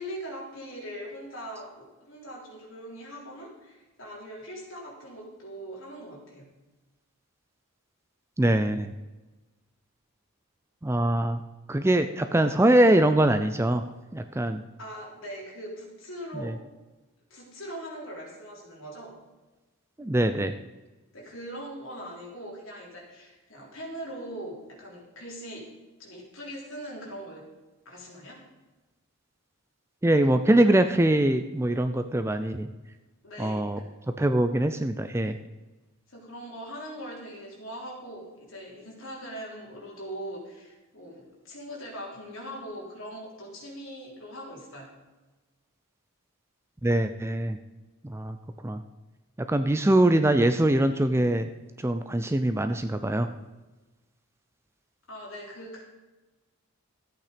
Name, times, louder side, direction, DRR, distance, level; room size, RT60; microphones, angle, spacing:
voice 1, 0.0-6.5 14.8-16.6 17.3-19.1 21.1-25.7 26.0-27.4 27.9-28.4 33.2-33.8 36.1-44.9 55.1-55.8, equal, 60° left, -3 dB, 3.7 m, -41 dB
voice 2, 8.4-8.9 10.8-11.4 11.7-13.8 14.1-14.6 16.4-16.5 20.0-20.5 30.0-32.7 33.4-33.8 34.2-35.4 46.8-47.6 48.0-48.4 48.6-48.8 49.5-51.5 51.8-53.3, right 1 dB, 10° right, 9 dB, 0.4 m, -23 dB
14.0 x 8.5 x 5.1 m, 1.2 s
head